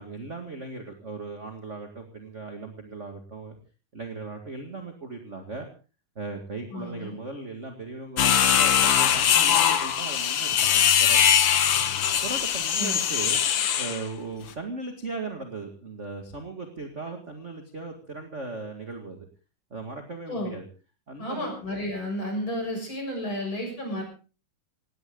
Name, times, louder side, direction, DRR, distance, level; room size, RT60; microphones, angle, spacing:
voice 1, 0.0-3.6 3.9-5.7 6.2-11.2 12.2-13.4 13.8-19.3 19.7-20.7 21.1-21.5, right 3 dB, 25° right, 4 dB, 1.7 m, -37 dB
voice 2, 6.7-7.2 12.8-13.0 20.3-20.5 21.2-24.0, left 1 dB, 35° left, 2 dB, 7.5 m, -32 dB
sound 1, 8.2-14.0, left 9 dB, 60° left, 1.5 m, -21 dB
18.5 x 17.5 x 3.8 m, 0.35 s
omnidirectional pair, 3.9 m